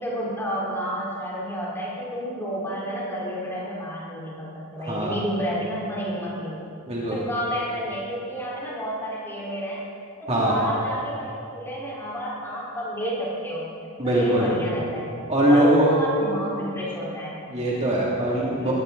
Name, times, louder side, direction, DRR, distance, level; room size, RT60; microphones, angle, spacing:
voice 1, 0.0-6.7 7.1-9.8 10.2-13.7 14.0-17.4 18.5-18.7, equal, 10° left, -7 dB, 4.3 m, -30 dB
voice 2, 6.9-7.2 10.3-10.6 14.0-14.5 15.3-16.0 17.5-18.7, right 1 dB, 30° right, -6 dB, 2.6 m, -21 dB
21.0 x 16.5 x 4.0 m, 2.5 s
head